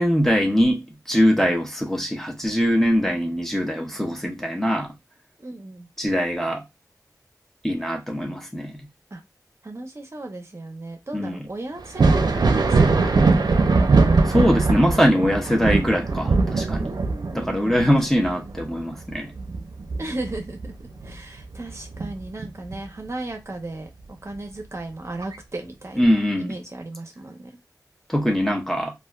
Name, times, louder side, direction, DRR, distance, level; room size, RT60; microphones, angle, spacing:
voice 1, 0.0-4.9 6.0-6.6 7.6-8.8 11.1-11.4 14.2-16.9 17.3-19.3 26.0-26.5 28.1-28.9, equal, 5° left, 0.7 m, -22 dB
voice 2, 5.4-5.9 9.1-9.2 9.6-13.4 16.8-18.0 20.0-20.7 21.0-26.1 26.4-27.6, right 2 dB, 40° right, 0.7 m, -36 dB
Thunder, 11.8-21.2 21.5-22.8 24.3-24.4 25.2-25.4, right 3 dB, 80° right, 0.5 m, -21 dB
3.3 x 2.4 x 2.3 m
wide cardioid pair, 75°, 7 cm